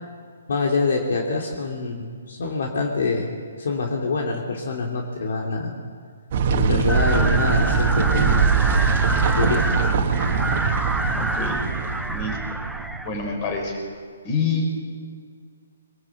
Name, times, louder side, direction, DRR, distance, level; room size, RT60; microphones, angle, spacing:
voice 1, 0.5-5.8 6.5-8.6 9.3-9.9, left 3 dB, 65° left, 1 dB, 2.8 m, -25 dB
sound 1, 6.3-13.7, right 5 dB, 45° right, 1.9 m, -22 dB
sound 2, 6.9-13.1, right 1 dB, ahead, 0.6 m, -28 dB
voice 2, 11.2-11.7 12.1-12.6 13.0-13.8 14.2-14.8, left 3 dB, 30° left, 2 dB, 5.0 m, -27 dB
22.5 x 19.0 x 8.0 m, 2.1 s
hypercardioid pair, 150°, 0 cm